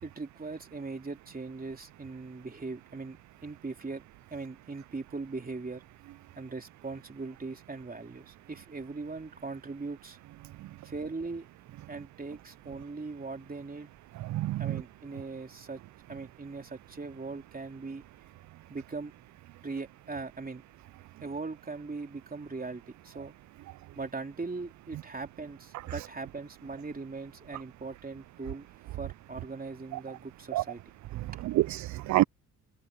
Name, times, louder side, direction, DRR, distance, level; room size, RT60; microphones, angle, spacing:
voice 1, 0.0-4.0 4.3-5.8 6.4-10.2 10.8-11.5 11.9-13.9 14.6-15.8 16.1-18.0 18.7-19.1 19.6-20.6 21.2-23.3 23.9-30.8 31.3-31.4, right 3 dB, 25° right, 3.3 m, -40 dB
voice 2, 14.3-14.7 30.5-30.6 31.4-32.2, right 16 dB, 55° right, 0.4 m, -26 dB
supercardioid pair, 60°, 34 cm